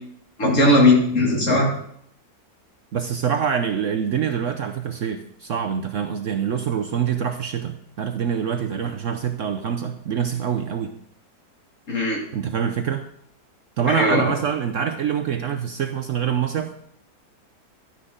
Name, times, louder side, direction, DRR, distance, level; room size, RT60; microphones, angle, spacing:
voice 1, 0.4-1.7 11.9-12.2 13.9-14.3, left 2 dB, 50° left, -1 dB, 2.8 m, -18 dB
voice 2, 2.9-10.9 12.3-13.1 13.8-16.7, right 8 dB, 60° right, 6 dB, 0.9 m, -25 dB
12.0 x 9.7 x 3.9 m, 0.70 s
omnidirectional pair, 1.7 m